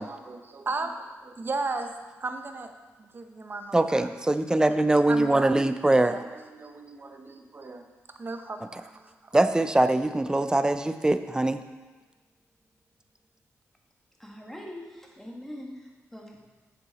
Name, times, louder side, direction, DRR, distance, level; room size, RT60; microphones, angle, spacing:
voice 1, 0.0-1.9 2.2-2.7 3.0-4.1 5.1-9.3, right 3 dB, 40° right, 6 dB, 0.8 m, -36 dB
voice 2, 3.7-6.2 9.3-11.6, right 2 dB, 15° right, 10 dB, 0.5 m, -22 dB
voice 3, 14.2-16.5, left 1 dB, 5° left, -1 dB, 1.6 m, -43 dB
7.9 x 7.0 x 4.1 m, 1.3 s
cardioid pair, 70°, 6 cm